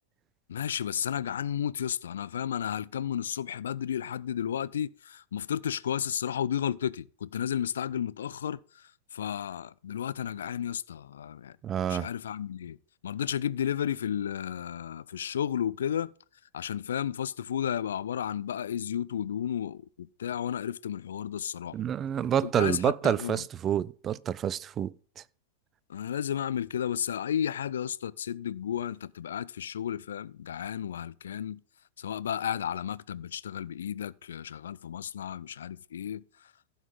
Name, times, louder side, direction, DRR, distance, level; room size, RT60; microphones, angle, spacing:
voice 1, 0.5-11.6 11.9-12.8 13.0-16.1 16.5-21.8 22.4-23.5 25.9-31.6 32.0-36.5, left 9 dB, 65° left, 0.4 m, -33 dB
voice 2, 11.6-12.1 21.7-24.9, right 9 dB, 25° right, 0.4 m, -28 dB
15.5 x 5.8 x 3.8 m
figure-of-eight pair, 90°, 0 cm